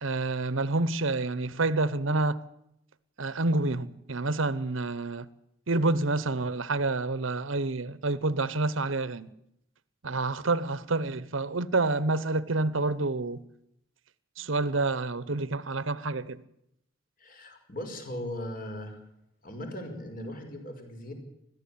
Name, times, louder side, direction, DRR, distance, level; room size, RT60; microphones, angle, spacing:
voice 1, 0.0-2.4 3.2-5.3 5.7-9.3 10.0-13.4 14.4-16.4, right 2 dB, 85° right, 1.0 m, -28 dB
voice 2, 17.2-19.0 19.4-21.1, left 1 dB, 45° left, 5.5 m, -38 dB
21.5 x 14.5 x 8.7 m
head